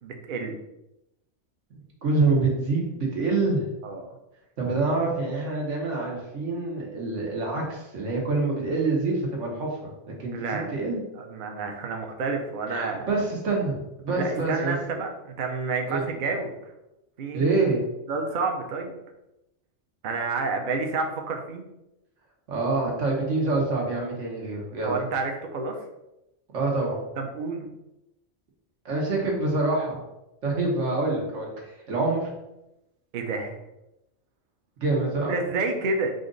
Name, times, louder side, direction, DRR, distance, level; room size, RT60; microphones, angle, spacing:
voice 1, 0.0-0.5 3.8-4.1 10.3-10.7 11.2-13.1 14.2-16.5 17.2-17.4 18.1-19.0 20.0-21.7 24.8-25.8 27.2-27.7 33.1-33.6 35.3-36.1, right 3 dB, 50° right, 3 dB, 0.7 m, -29 dB
voice 2, 2.0-3.7 4.6-11.0 12.7-14.8 15.9-16.0 17.3-17.8 22.5-24.9 26.5-27.0 28.8-30.0 30.4-32.3 34.8-35.4, right 3 dB, 90° right, -1 dB, 1.5 m, -26 dB
5.0 x 2.5 x 3.8 m, 0.91 s
omnidirectional pair, 1.2 m